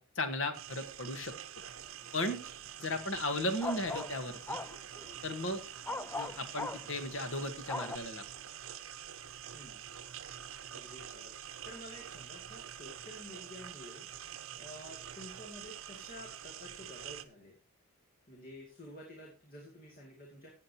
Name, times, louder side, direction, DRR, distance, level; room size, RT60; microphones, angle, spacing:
voice 1, 0.0-1.3 2.1-2.4 2.8-4.6 5.2-5.6 6.1-8.2, left 1 dB, 60° left, 8 dB, 1.5 m, -36 dB
sound 1, 0.5-17.2, right 10 dB, 65° right, 0.7 m, -46 dB
sound 2, 2.1-2.5 3.6-5.6 5.9-8.0, left 2 dB, 10° left, 0.4 m, -39 dB
voice 2, 10.7-14.1 14.6-17.6 18.3-20.5, left 1 dB, 40° left, -1 dB, 2.4 m, -51 dB
16.0 x 7.5 x 2.9 m, 0.34 s
head